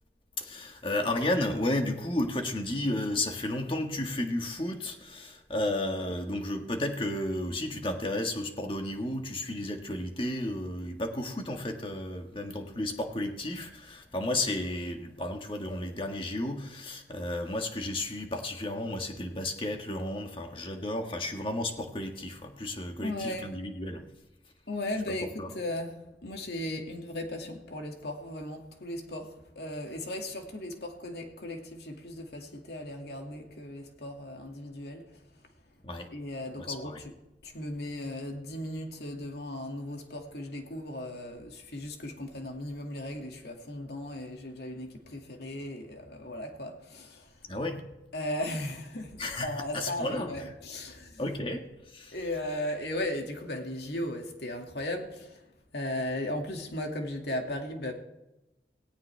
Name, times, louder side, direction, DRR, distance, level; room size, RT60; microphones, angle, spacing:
voice 1, 0.4-24.0 25.4-25.5 35.8-36.1 36.6-37.0 47.5-47.8 49.2-50.3 51.2-52.1, left 1 dB, 30° left, 1.7 m, -33 dB
voice 2, 23.0-23.5 24.7-35.2 36.1-37.1 37.4-47.5 48.1-51.2 52.1-55.4 55.7-57.9, left 1 dB, 70° left, 2.3 m, -36 dB
18.0 x 17.0 x 3.5 m
head